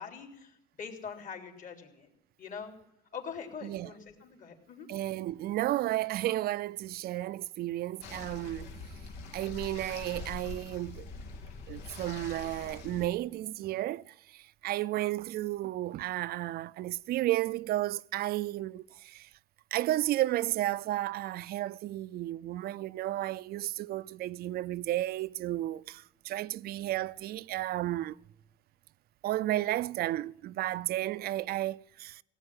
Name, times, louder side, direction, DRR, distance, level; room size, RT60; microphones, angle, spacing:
voice 1, 0.0-2.1 2.4-2.7 3.1-4.9, left 6 dB, 50° left, 3.5 m, -43 dB
voice 2, 4.9-8.7 9.3-11.1 11.7-19.3 19.7-28.2 29.2-32.2, right 15 dB, 65° right, 0.5 m, -33 dB
sound 1, 8.0-13.1, left 4 dB, 90° left, 2.2 m, -44 dB
17.0 x 8.6 x 9.6 m
cardioid pair, 110°, 17 cm